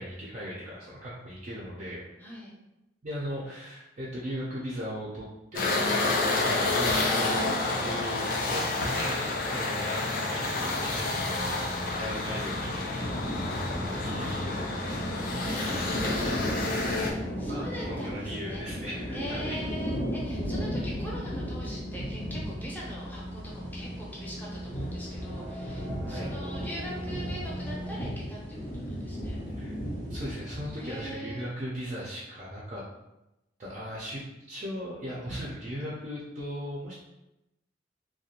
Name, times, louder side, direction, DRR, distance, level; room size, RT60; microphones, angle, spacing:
voice 1, 0.0-2.0 3.0-5.3 5.5-5.8 6.1-7.5 7.8-13.2 13.7-16.7 17.4-19.6 20.7-21.0 26.0-26.4 29.6-29.8 30.1-32.8 33.6-36.9, equal, 40° right, -5 dB, 0.4 m, -38 dB
voice 2, 2.2-2.5 10.6-11.0 12.9-13.4 17.0-18.6 19.1-29.4 30.8-31.5, equal, 10° left, -5 dB, 0.6 m, -42 dB
sound 1, 5.5-17.1, left 2 dB, 50° left, 0.4 m, -29 dB
sound 2, 11.1-28.0, equal, 90° right, 0.6 m, -42 dB
sound 3, 13.0-31.1, equal, 70° left, 0.7 m, -36 dB
2.4 x 2.2 x 2.8 m, 0.94 s
head